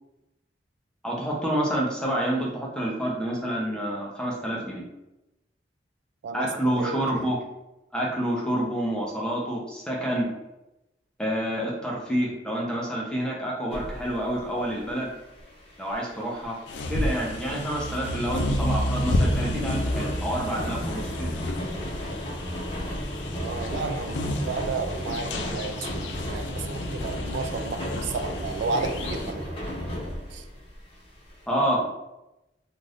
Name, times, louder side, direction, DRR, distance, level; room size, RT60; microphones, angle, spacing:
voice 1, 1.0-4.8 6.3-7.4 7.9-10.3 11.2-15.1 15.8-16.6 16.9-21.5 31.5-31.9, right 1 dB, 5° left, -4 dB, 0.6 m, -28 dB
voice 2, 6.2-7.2 23.4-29.5 30.3-30.4, right 4 dB, 80° right, 6 dB, 0.3 m, -32 dB
sound 1, 13.7-31.3, equal, 35° left, 0.8 m, -35 dB
sound 2, 16.7-29.3, left 1 dB, 80° left, 0.4 m, -31 dB
2.5 x 2.5 x 3.3 m, 0.94 s
head